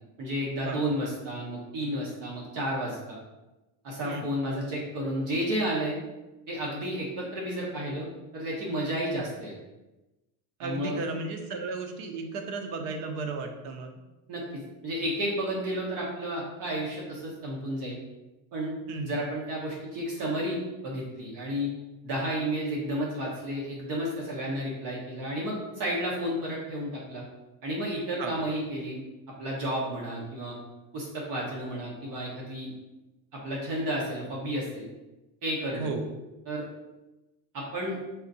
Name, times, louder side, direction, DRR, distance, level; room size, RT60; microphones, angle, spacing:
voice 1, 0.2-3.2 3.8-6.0 6.5-9.5 10.6-11.0 14.3-18.0 18.5-18.7 19.1-21.7 22.0-27.2 27.6-29.0 29.4-30.6 30.9-32.8 33.3-34.9 35.4-35.9 36.5-36.6 37.5-38.0, equal, 50° right, -4 dB, 1.2 m, -32 dB
voice 2, 10.6-13.9 18.9-19.1 28.2-28.4 35.7-36.1, right 3 dB, 65° right, 4 dB, 0.8 m, -34 dB
4.1 x 2.6 x 4.1 m, 1.0 s
cardioid pair, 165°, 41 cm